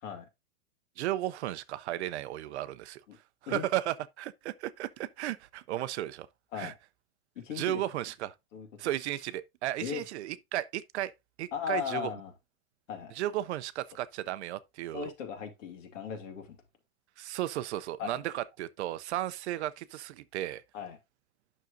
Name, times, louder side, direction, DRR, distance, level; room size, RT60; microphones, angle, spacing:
voice 1, 1.0-3.0 3.4-6.3 6.5-6.7 7.5-8.3 8.8-11.1 11.4-12.1 13.1-15.1 17.2-20.6, right 14 dB, 55° right, 0.6 m, -34 dB
voice 2, 7.4-7.8 8.5-8.7 9.8-10.0 11.5-12.3 12.9-13.1 14.9-16.6 18.0-18.2 20.7-21.0, left 8 dB, 65° left, 2.5 m, -37 dB
9.2 x 6.3 x 2.5 m
supercardioid pair, 155°, 41 cm